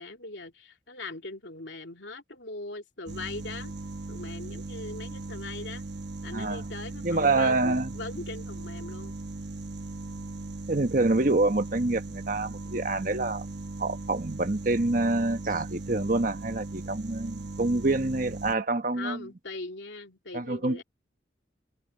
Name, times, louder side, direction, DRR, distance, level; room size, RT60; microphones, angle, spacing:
voice 1, 0.0-3.7 4.1-5.8 6.2-9.2 18.9-20.8, left 2 dB, 80° left, 2.8 m, -40 dB
sound 1, 3.0-18.5, right 2 dB, 65° right, 1.2 m, -38 dB
voice 2, 6.3-6.6 7.0-7.9 10.7-13.4 13.8-19.2 20.3-20.8, right 2 dB, 45° right, 1.3 m, -26 dB
head